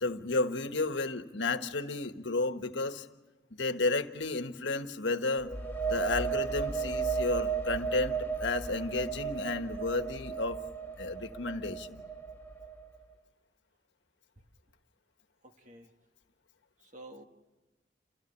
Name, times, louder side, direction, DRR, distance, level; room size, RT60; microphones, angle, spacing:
voice 1, 0.0-3.1 3.5-5.5 5.9-10.6 11.0-12.0, left 3 dB, 90° left, 1.4 m, -32 dB
sound 1, 5.4-13.0, right 6 dB, 10° left, 1.3 m, -35 dB
voice 2, 15.4-15.9 16.8-17.2, right 1 dB, 45° right, 1.8 m, -50 dB
28.5 x 16.5 x 10.0 m
head